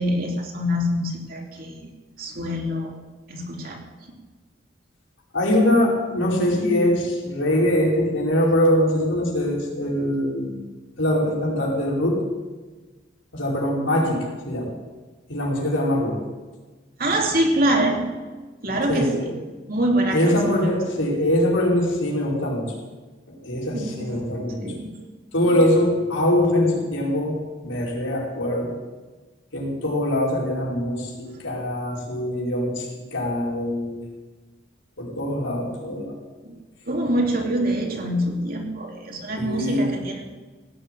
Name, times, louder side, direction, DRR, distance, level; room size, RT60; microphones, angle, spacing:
voice 1, 0.0-1.9 2.2-2.9 3.3-3.8 17.0-18.0 18.6-19.2 19.7-20.5 23.7-24.3 24.6-24.9 25.4-25.6 36.4-36.6 36.8-40.3, right 1 dB, 50° right, 1 dB, 2.9 m, -25 dB
voice 2, 5.3-10.7 11.0-12.3 13.3-14.8 15.3-16.3 18.9-19.3 20.1-22.7 23.3-24.6 25.3-28.8 29.5-34.0 35.0-36.2 39.4-39.9, left 1 dB, 90° left, -3 dB, 5.2 m, -23 dB
17.5 x 8.0 x 9.2 m, 1.3 s
head